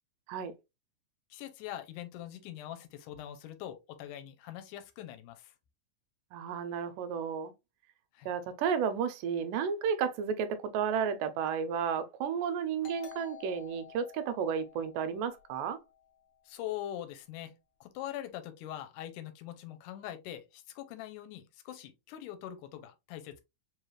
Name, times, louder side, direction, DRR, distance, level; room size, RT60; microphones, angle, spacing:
voice 1, 1.3-5.5 8.1-8.3 16.5-17.5 17.8-23.4, left 12 dB, 85° left, 2.1 m, -43 dB
voice 2, 6.3-7.5 8.3-15.8, right 7 dB, 85° right, 2.2 m, -32 dB
Doorbell, 12.8-16.2, left 8 dB, 60° left, 1.3 m, -51 dB
4.9 x 3.1 x 2.3 m
omnidirectional pair, 3.7 m